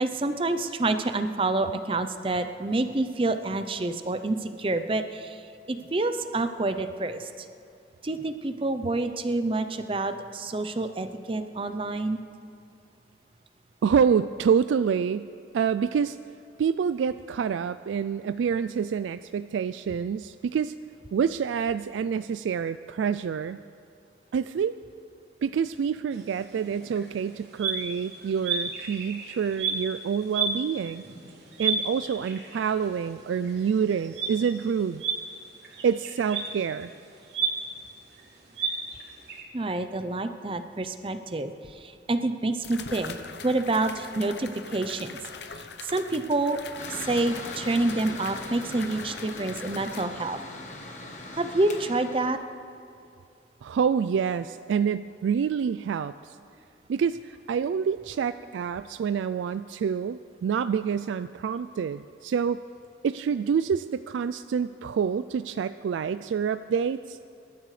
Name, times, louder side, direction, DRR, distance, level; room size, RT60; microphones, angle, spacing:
voice 1, 0.0-5.4 5.7-7.5 8.0-12.2 39.5-43.1 43.4-45.2 45.5-46.6 46.9-50.4 51.3-52.4, right 2 dB, 30° right, 9 dB, 0.6 m, -28 dB
voice 2, 13.8-16.2 16.6-20.7 21.1-23.6 24.3-24.8 25.4-31.0 31.6-35.0 35.8-36.9 53.6-56.4 56.9-62.6 63.0-67.2, right 7 dB, 90° right, 12 dB, 0.3 m, -27 dB
sound 1, 26.1-39.4, right 4 dB, 65° right, 3.2 m, -34 dB
sound 2, 41.6-41.7 42.6-50.0, left 5 dB, 70° left, 0.8 m, -42 dB
Mechanical fan, 46.8-52.3, left 2 dB, 40° left, 1.3 m, -40 dB
25.0 x 13.0 x 3.3 m, 2.6 s
head